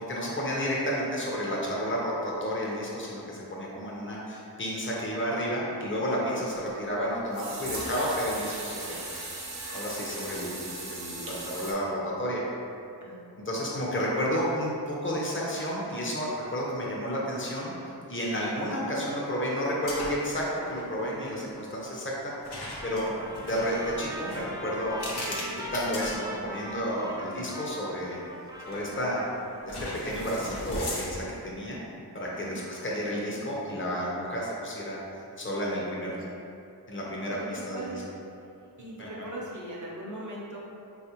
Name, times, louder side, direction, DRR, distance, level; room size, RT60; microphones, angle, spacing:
voice 1, 0.1-9.0 9.7-12.4 13.5-17.7 18.1-22.3 22.8-23.1 23.4-25.0 25.3-28.2 28.7-29.3 29.6-31.8 32.1-35.0 35.4-36.1 36.9-37.9 38.8-39.1, equal, 30° left, -4 dB, 0.7 m, -31 dB
sound 1, 7.3-11.7, right 2 dB, 85° right, 0.7 m, -38 dB
voice 2, 9.7-10.2 13.0-13.2 32.4-32.6 35.7-36.4 37.2-38.1 38.8-40.6, right 1 dB, 45° right, -4 dB, 0.7 m, -41 dB
sound 2, 19.8-20.4 20.6-20.9 22.4-26.8 27.4-27.5 28.7-29.1 29.7-31.4, left 1 dB, 65° left, 0.7 m, -38 dB
Trumpet, 22.7-29.8, equal, 10° right, 0.4 m, -40 dB
3.5 x 2.5 x 2.9 m, 2.6 s
wide cardioid pair, 45°, 43 cm